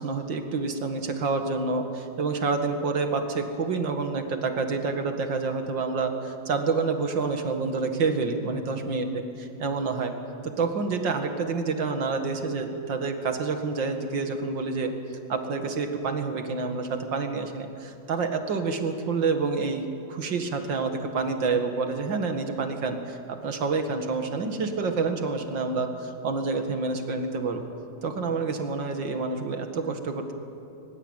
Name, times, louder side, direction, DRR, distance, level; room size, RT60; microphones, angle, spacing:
voice 1, 0.0-10.2 10.4-14.9 15.3-27.6 28.0-30.3, right 4 dB, 65° right, 6 dB, 2.6 m, -28 dB
22.5 x 20.5 x 9.0 m, 2.7 s
omnidirectional pair, 2.1 m